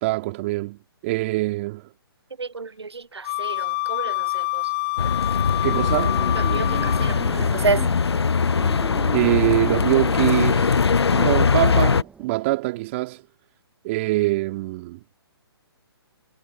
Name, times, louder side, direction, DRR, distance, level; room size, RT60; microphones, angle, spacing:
voice 1, 0.0-1.9 5.6-6.2 9.1-10.8 11.1-13.2 13.8-15.0, right 20 dB, 30° right, 2.9 m, -24 dB
voice 2, 2.4-4.6 6.4-7.9, right 4 dB, 85° right, 0.6 m, -29 dB
Wind instrument woodwind instrument, 3.2-7.3, left 22 dB, 25° left, 0.8 m, -27 dB
sound 1, 5.0-12.0, left 5 dB, 80° left, 0.5 m, -21 dB
sound 2, 6.1-12.3, right 5 dB, 10° right, 8.0 m, -40 dB
figure-of-eight pair, 140°, 13 cm